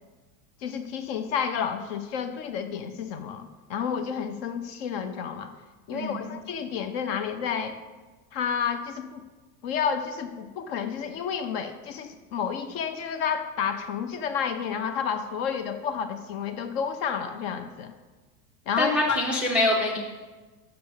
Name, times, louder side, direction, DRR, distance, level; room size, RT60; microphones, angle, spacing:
voice 1, 0.6-5.5 5.9-7.8 8.3-9.3 9.6-17.9 18.7-19.2, left 7 dB, 40° left, 9 dB, 0.6 m, -30 dB
voice 2, 5.9-6.3 18.8-20.0, left 1 dB, 5° right, -5 dB, 0.4 m, -24 dB
6.8 x 6.5 x 7.0 m, 1.3 s
supercardioid pair, 165°, 48 cm